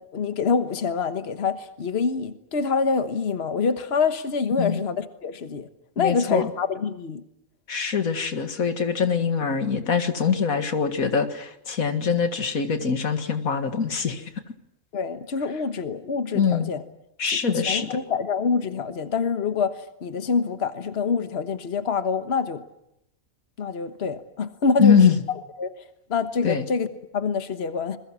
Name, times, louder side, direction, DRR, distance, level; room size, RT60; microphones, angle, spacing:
voice 1, 0.0-5.7 6.0-7.2 14.9-16.8 17.3-17.4 17.7-22.6 23.6-25.0 25.6-25.7 26.1-26.9 27.1-28.0, left 5 dB, 50° left, 1.5 m, -26 dB
voice 2, 6.0-6.5 7.7-14.3 16.3-16.7 17.2-18.0 24.8-25.2 26.4-26.6, left 6 dB, 85° left, 2.2 m, -23 dB
27.5 x 21.5 x 7.5 m
omnidirectional pair, 1.4 m